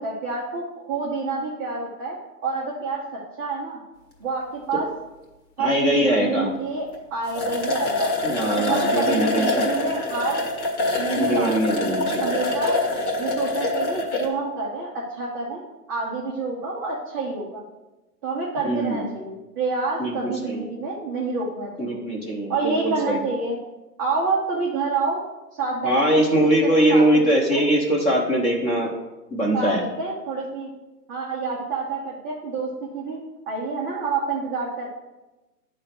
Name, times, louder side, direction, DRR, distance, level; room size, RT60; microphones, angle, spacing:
voice 1, 0.0-3.8 4.2-4.9 5.6-8.1 8.6-10.4 11.0-12.8 13.2-15.6 15.9-17.6 18.2-22.0 22.5-23.6 24.0-25.2 25.5-27.7 29.5-30.7 31.1-34.9, right 4 dB, 15° right, -7 dB, 0.5 m, -28 dB
voice 2, 5.6-6.5 8.2-9.7 11.2-12.4 18.6-19.0 20.0-20.6 21.8-23.2 25.8-28.9 29.3-29.8, right 1 dB, 15° left, 0 dB, 0.9 m, -22 dB
sound 1, 6.9-7.0 7.3-14.3, left 2 dB, 65° left, 1.8 m, -25 dB
9.2 x 3.4 x 5.8 m, 1.1 s
hypercardioid pair, 145°, 47 cm